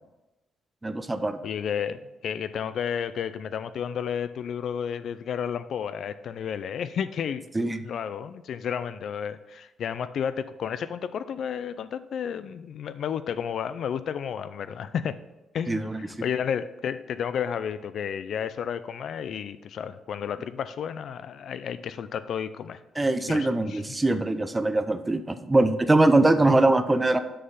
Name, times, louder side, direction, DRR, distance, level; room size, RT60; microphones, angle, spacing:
voice 1, 0.8-1.4 7.5-7.8 15.7-16.0 23.0-27.2, right 2 dB, 15° right, 10 dB, 0.6 m, -22 dB
voice 2, 1.4-7.4 7.8-15.2 15.5-15.9 16.2-22.8 23.3-23.8, left 8 dB, 65° left, 13 dB, 0.4 m, -32 dB
6.7 x 5.5 x 5.7 m, 1.0 s
cardioid pair, 90°, 0 cm